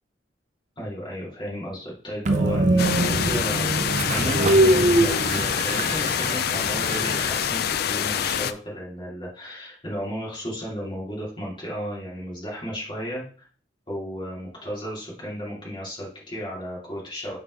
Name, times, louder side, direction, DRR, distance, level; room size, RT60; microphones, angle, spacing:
voice 1, 0.8-13.5 13.9-17.4, equal, 25° left, -5 dB, 2.6 m, -34 dB
Train, 2.3-7.5, right 2 dB, 40° right, 0.6 m, -23 dB
sound 1, 2.8-8.5, left 9 dB, 60° left, 0.4 m, -26 dB
5.3 x 4.0 x 4.6 m, 0.43 s
head